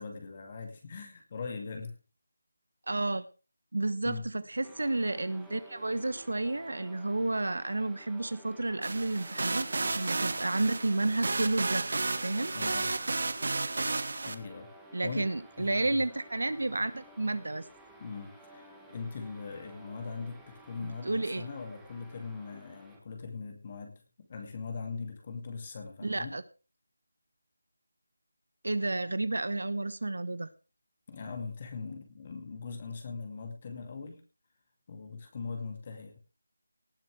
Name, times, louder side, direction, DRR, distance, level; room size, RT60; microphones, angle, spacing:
voice 1, 0.0-2.0 4.0-4.3 12.5-13.0 14.2-14.7 15.0-16.1 18.0-26.3 31.1-34.2 34.9-36.2, left 4 dB, 30° left, 4 dB, 2.5 m, -41 dB
voice 2, 2.9-3.3 3.7-4.1 4.5-12.5 14.9-17.7 20.8-21.4 26.0-26.4 28.6-30.5, right 2 dB, 85° right, 13 dB, 1.4 m, -31 dB
sound 1, 4.6-23.0, right 1 dB, ahead, 1.7 m, -54 dB
sound 2, 8.8-14.4, right 3 dB, 55° right, 1.5 m, -32 dB
18.5 x 10.5 x 3.4 m, 0.34 s
figure-of-eight pair, 175°, 0 cm